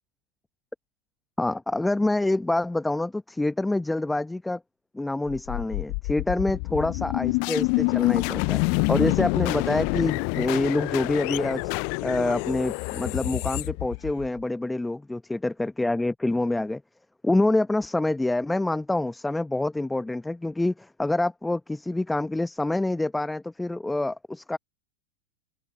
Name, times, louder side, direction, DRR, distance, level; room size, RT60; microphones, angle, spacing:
voice 1, 1.4-4.6 4.9-8.6 8.9-11.7 12.0-16.8 17.2-24.6, left 2 dB, 5° left, 1.0 m, -26 dB
sound 1, 5.3-14.4, left 40 dB or more, 45° left, 0.3 m, -27 dB
open air
figure-of-eight pair, 90°, 0 cm